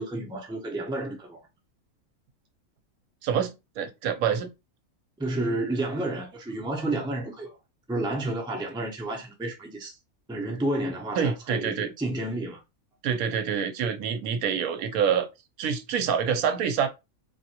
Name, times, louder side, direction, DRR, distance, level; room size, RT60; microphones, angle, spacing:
voice 1, 0.0-1.4 5.2-7.6 7.9-10.0 10.3-12.6, right 1 dB, 5° right, 0.4 m, -31 dB
voice 2, 3.2-4.5 11.2-11.9 13.0-15.3 15.6-16.9, right 7 dB, 80° right, 1.0 m, -26 dB
3.4 x 2.5 x 2.8 m
omnidirectional pair, 1.5 m